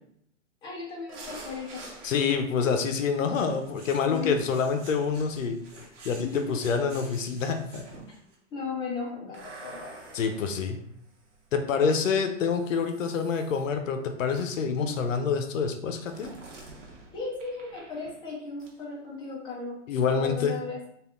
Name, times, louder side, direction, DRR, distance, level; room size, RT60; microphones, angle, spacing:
voice 1, 0.6-1.8 4.1-4.5 6.2-6.6 8.5-9.9 14.8-14.9 17.1-19.8 20.1-20.9, left 4 dB, 15° left, -4 dB, 0.5 m, -36 dB
sound 1, 1.1-2.6 3.3-8.3 9.3-11.5 12.5-13.7 14.3-14.7 16.1-18.3 18.6-18.8, right 2 dB, 70° right, 1.0 m, -48 dB
voice 2, 2.0-5.6 6.0-7.9 10.1-10.8 11.5-16.3 19.9-20.6, left 5 dB, 90° left, 6 dB, 0.6 m, -27 dB
3.4 x 2.4 x 2.3 m, 0.69 s
hypercardioid pair, 140°, 37 cm